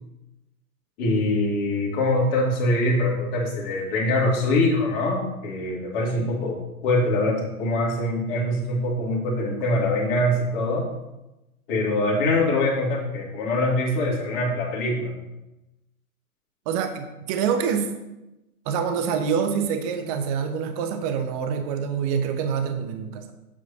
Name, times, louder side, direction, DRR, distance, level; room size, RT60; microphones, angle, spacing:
voice 1, 1.0-10.9 11.7-15.1, left 1 dB, 40° left, -3 dB, 2.6 m, -23 dB
voice 2, 16.7-17.9 18.7-23.3, right 7 dB, 25° right, 7 dB, 0.7 m, -26 dB
9.1 x 7.5 x 2.8 m, 0.96 s
figure-of-eight pair, 115°, 44 cm